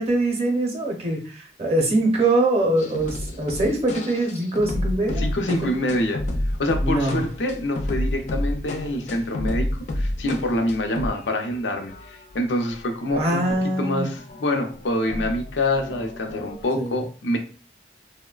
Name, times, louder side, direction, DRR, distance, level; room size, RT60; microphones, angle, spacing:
voice 1, 0.0-5.5 6.8-7.2 13.1-14.1 16.7-17.0, right 2 dB, 35° right, 1 dB, 0.6 m, -23 dB
sound 1, 2.8-11.2 11.5-11.6 11.9-13.9 14.2-16.6, left 1 dB, 40° left, 0.4 m, -30 dB
voice 2, 5.2-6.2 6.6-9.7 9.9-13.4 13.8-17.4, left 1 dB, 90° left, 4 dB, 0.5 m, -26 dB
3.0 x 2.1 x 2.3 m, 0.37 s
head